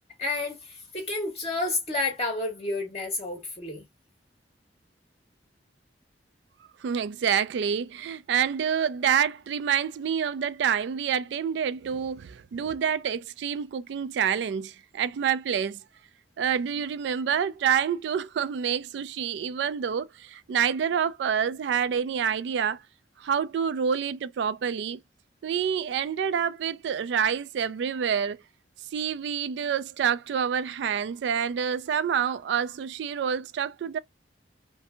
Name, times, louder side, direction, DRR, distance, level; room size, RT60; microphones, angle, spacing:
voice 1, 0.2-3.9, left 2 dB, 35° left, 0.7 m, -30 dB
voice 2, 6.8-15.8 16.4-22.8 23.2-25.0 25.4-28.4 28.9-34.0, right 7 dB, 75° right, 0.3 m, -27 dB
2.6 x 2.6 x 2.3 m
head